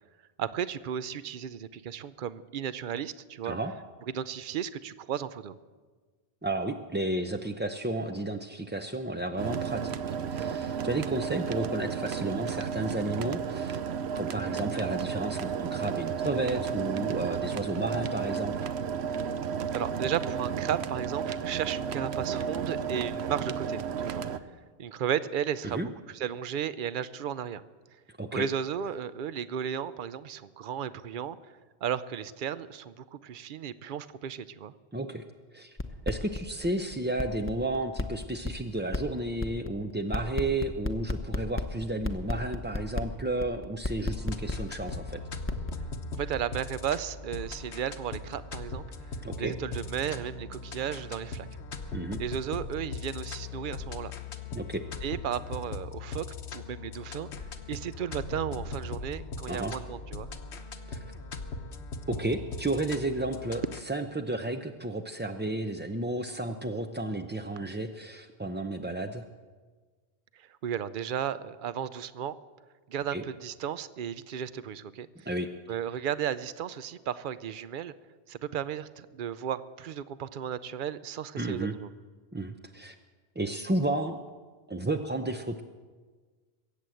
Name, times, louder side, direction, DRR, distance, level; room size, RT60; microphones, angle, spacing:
voice 1, 0.4-3.6 4.1-5.6 19.7-24.2 24.8-27.6 28.3-31.5 31.8-34.7 46.2-48.8 49.4-51.5 52.2-54.1 55.0-56.2 56.5-57.3 57.7-60.3 70.3-72.4 72.9-75.1 75.7-77.9 78.3-81.9, right 9 dB, 55° right, 15 dB, 0.7 m, -34 dB
voice 2, 6.4-13.8 14.1-18.7 25.6-25.9 28.2-28.5 34.9-35.2 35.5-35.8 36.1-45.2 49.2-49.5 51.9-52.2 54.5-54.8 59.5-59.7 60.9-61.0 62.1-69.3 73.1-73.2 75.3-75.5 81.4-81.8 82.3-83.0 83.4-84.2 84.7-85.6, right 2 dB, 15° right, 5 dB, 0.3 m, -32 dB
sound 1, 9.4-24.4, right 7 dB, 85° right, 1.0 m, -33 dB
sound 2, 35.8-36.4 36.6-36.7 36.9-45.1 45.5-45.7, left 2 dB, 15° left, 0.7 m, -30 dB
sound 3, 44.1-63.8, left 3 dB, 90° left, 1.3 m, -40 dB
22.0 x 8.5 x 7.7 m, 1.4 s
omnidirectional pair, 1.1 m